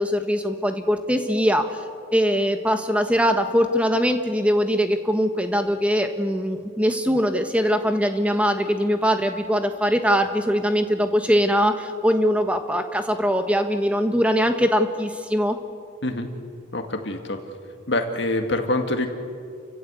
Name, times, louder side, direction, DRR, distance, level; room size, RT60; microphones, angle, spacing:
voice 1, 0.0-1.8 2.1-15.6, equal, 5° right, 6 dB, 1.3 m, -22 dB
voice 2, 16.7-17.4 17.9-19.1, left 2 dB, 60° left, 5 dB, 2.1 m, -25 dB
29.5 x 15.5 x 8.3 m, 2.3 s
head